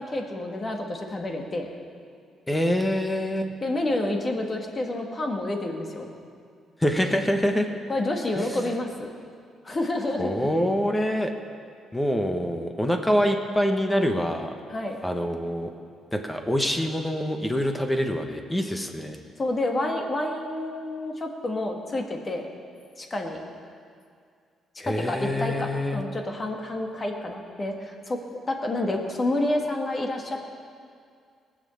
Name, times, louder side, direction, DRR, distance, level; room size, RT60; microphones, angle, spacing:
voice 1, 0.0-1.7 3.6-6.1 7.9-9.1 9.6-10.4 14.7-15.0 19.4-22.5 23.0-23.4 24.8-28.2 28.5-30.4, left 1 dB, 30° left, 2 dB, 2.0 m, -29 dB
voice 2, 2.5-3.5 6.8-7.7 8.4-8.7 10.2-11.3 11.9-14.5 15.0-15.7 16.1-19.2 24.8-26.0, equal, 10° left, 5 dB, 1.2 m, -25 dB
19.0 x 7.6 x 7.2 m, 2.2 s
cardioid pair, 90°, 0 cm